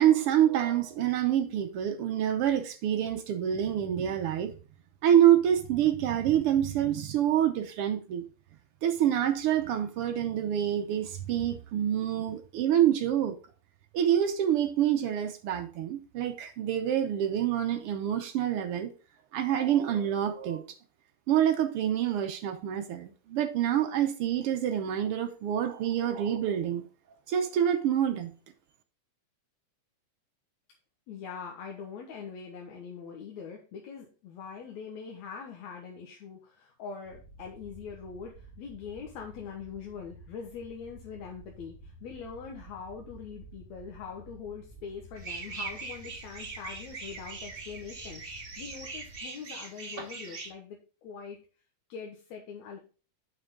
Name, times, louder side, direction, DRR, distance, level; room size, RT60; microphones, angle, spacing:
voice 1, 0.0-4.5 5.0-8.2 8.8-13.3 13.9-18.9 19.3-20.6 21.3-26.8 27.3-28.3, right 10 dB, 70° right, 1.4 m, -26 dB
voice 2, 31.1-51.4 51.9-52.8, left 6 dB, 75° left, 2.4 m, -43 dB
sound 1, 37.0-49.2, right 1 dB, 55° left, 2.4 m, -51 dB
sound 2, 45.1-50.5, right 3 dB, 55° right, 0.6 m, -41 dB
8.0 x 6.2 x 3.7 m
omnidirectional pair, 3.3 m